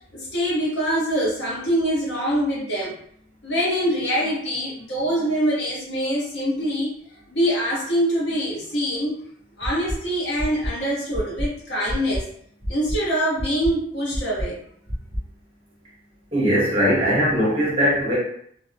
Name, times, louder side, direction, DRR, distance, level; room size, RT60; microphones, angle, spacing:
voice 1, 0.0-2.9 3.4-6.9 7.3-9.2 9.6-12.3 12.7-14.6, equal, 65° left, -6 dB, 1.0 m, -24 dB
sound 1, 9.6-9.9 10.4-10.7 11.1-11.5 11.9-12.2 12.6-13.0 13.4-13.7 14.1-14.5 14.9-15.2, equal, 40° left, 0.8 m, -27 dB
voice 2, 16.3-18.2, equal, 30° right, -8 dB, 1.0 m, -20 dB
2.8 x 2.1 x 2.5 m, 0.65 s
head